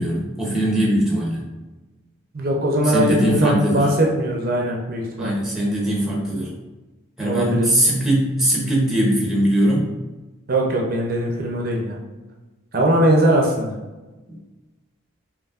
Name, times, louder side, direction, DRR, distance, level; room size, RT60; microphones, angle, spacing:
voice 1, 0.0-1.4 2.8-3.9 5.2-6.5 7.2-9.9 14.3-14.4, right 1 dB, ahead, -3 dB, 0.7 m, -20 dB
voice 2, 2.3-5.3 7.2-7.7 10.5-12.0 12.7-13.8, right 1 dB, 45° right, -1 dB, 0.5 m, -20 dB
5.2 x 2.7 x 2.4 m, 1.2 s
head